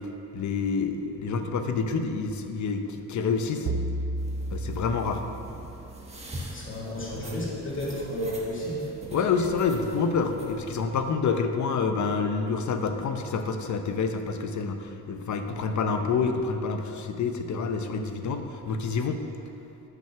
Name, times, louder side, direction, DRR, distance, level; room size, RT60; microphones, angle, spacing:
voice 1, 0.3-3.7 4.5-5.2 9.1-19.2, left 5 dB, 55° left, 6 dB, 0.8 m, -28 dB
sound 1, 3.7-6.1, right 2 dB, 55° right, 0.5 m, -32 dB
sound 2, 4.2-10.8, right 1 dB, 20° right, 1.1 m, -43 dB
voice 2, 6.5-8.9, equal, 35° left, -5 dB, 2.3 m, -32 dB
9.1 x 5.9 x 5.9 m, 2.8 s
wide cardioid pair, 150°, 34 cm